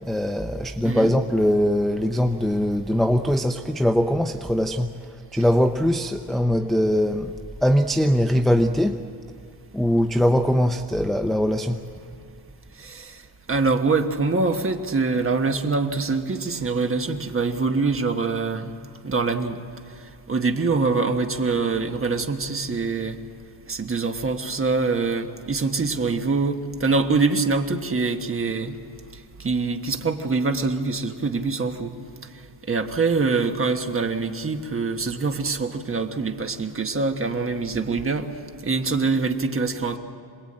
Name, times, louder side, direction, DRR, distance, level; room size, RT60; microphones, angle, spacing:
voice 1, 0.0-7.3 7.6-9.0 9.7-11.8, equal, ahead, 5 dB, 0.6 m, -21 dB
voice 2, 12.8-13.2 13.5-18.7 19.0-19.6 20.3-23.2 23.7-28.8 29.4-31.9 32.7-38.3 38.6-40.0, right 4 dB, 30° right, 5 dB, 1.4 m, -24 dB
27.0 x 20.5 x 8.8 m, 2.4 s
wide cardioid pair, 165°, 45 cm